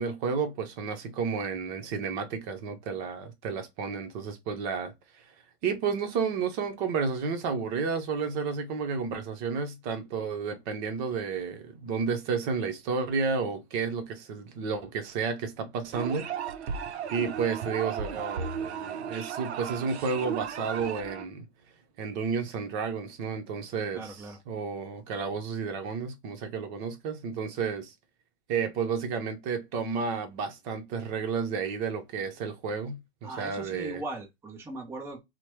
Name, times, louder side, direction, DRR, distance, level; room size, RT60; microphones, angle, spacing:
voice 1, 0.0-4.9 5.6-16.3 16.7-21.5 22.0-24.1 24.5-27.9 28.5-33.0 33.4-34.0, right 5 dB, 45° right, 0.8 m, -31 dB
sound 1, 15.9-21.3, right 7 dB, 80° right, 0.6 m, -35 dB
voice 2, 23.9-24.4 33.2-35.2, right 2 dB, 10° right, 0.6 m, -39 dB
3.0 x 2.1 x 3.0 m
hypercardioid pair, 125°, 33 cm